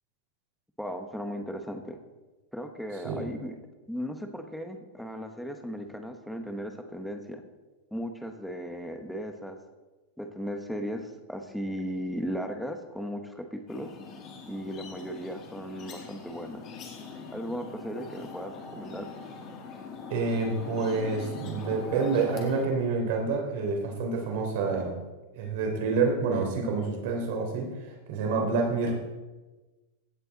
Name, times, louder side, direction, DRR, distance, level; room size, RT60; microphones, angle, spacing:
voice 1, 0.8-2.0 2.5-3.5 3.9-7.4 7.9-9.6 10.2-13.9 14.5-16.6 17.3-19.1, equal, ahead, 5 dB, 1.0 m, -36 dB
sound 1, 13.7-22.7, left 4 dB, 30° left, 2.0 m, -42 dB
voice 2, 20.1-24.9 25.3-27.7 28.1-28.9, right 4 dB, 55° right, 1 dB, 3.3 m, -28 dB
16.0 x 7.7 x 4.0 m, 1.2 s
supercardioid pair, 150°, 0 cm